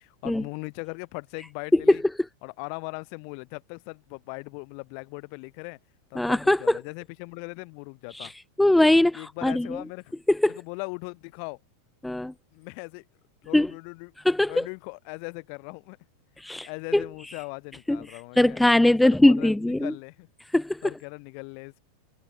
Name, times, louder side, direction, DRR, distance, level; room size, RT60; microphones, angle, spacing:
voice 1, 0.0-2.0 2.4-5.8 6.1-8.3 9.1-10.2 10.5-11.6 12.5-13.0 13.4-14.1 14.5-16.0 16.6-18.6 19.0-20.3 20.8-21.8, left 40 dB or more, 55° left, 4.7 m, -39 dB
voice 2, 6.2-6.8 8.1-8.3 8.6-9.8 10.3-10.6 12.0-12.3 13.5-13.7 14.2-14.7 16.4-17.0 17.9-18.0 18.4-19.9 20.5-20.8, left 1 dB, 5° left, 0.7 m, -21 dB
hypercardioid pair, 110°, 0 cm